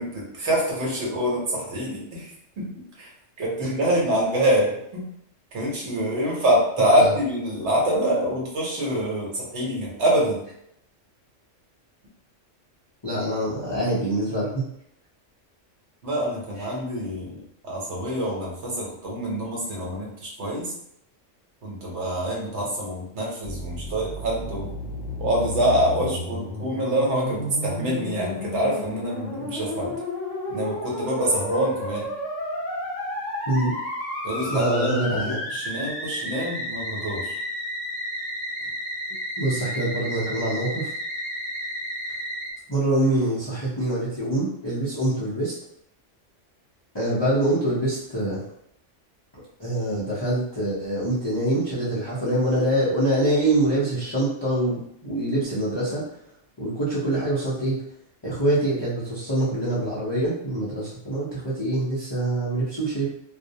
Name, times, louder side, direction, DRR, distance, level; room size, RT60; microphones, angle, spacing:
voice 1, 0.0-3.1 3.4-5.0 5.5-10.4 16.0-20.7 21.6-24.7 25.2-29.9 30.5-32.1 34.2-37.4, right 1 dB, 65° right, -3 dB, 1.1 m, -25 dB
voice 2, 13.0-14.6 33.5-33.7 34.5-35.4 39.4-40.9 42.7-45.5 46.9-48.4 49.6-56.0 56.6-57.8 58.2-63.1, right 1 dB, 30° left, -9 dB, 0.5 m, -25 dB
Musical instrument, 23.4-42.5, left 1 dB, 80° left, 1.0 m, -32 dB
2.4 x 2.1 x 2.7 m, 0.74 s
omnidirectional pair, 1.3 m